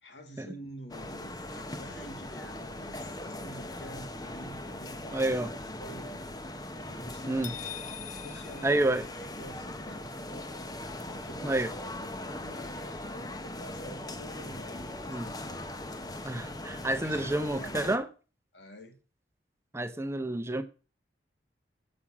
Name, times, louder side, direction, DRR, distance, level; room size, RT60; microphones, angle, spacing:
voice 1, 0.0-6.3 6.9-7.4 8.1-8.9 9.2-10.4 11.1-11.6 12.0-15.6 16.9-18.0 18.5-19.0, equal, 80° left, 2.1 m, -48 dB
sound 1, 0.9-18.0, left 1 dB, 20° left, 0.9 m, -40 dB
voice 2, 5.1-5.5 7.3-7.5 8.6-9.1 11.4-11.7 15.1-15.3 16.2-18.1 19.7-20.6, right 1 dB, 15° right, 0.8 m, -29 dB
sound 2, 7.4-9.6, left 11 dB, 45° left, 0.5 m, -44 dB
7.5 x 6.4 x 7.2 m
head